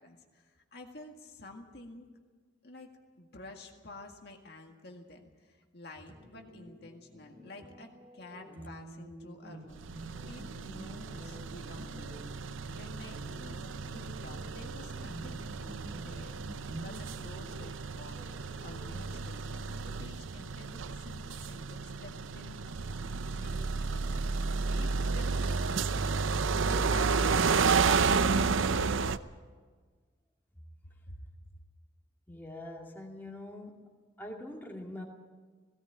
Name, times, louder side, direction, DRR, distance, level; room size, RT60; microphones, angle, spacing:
voice 1, 0.0-2.1 2.6-2.9 3.2-12.2 12.7-15.7 16.0-22.6 23.1-26.0 26.3-28.7 31.1-31.2, left 2 dB, 55° left, 2 dB, 1.9 m, -50 dB
sound 1, 6.1-19.3, right 1 dB, 35° right, 3.1 m, -49 dB
sound 2, 9.8-29.2, right 4 dB, 85° right, 0.6 m, -32 dB
voice 2, 32.3-33.9 34.2-35.0, left 1 dB, 10° left, -1 dB, 2.4 m, -43 dB
17.5 x 17.5 x 8.9 m, 1.5 s
head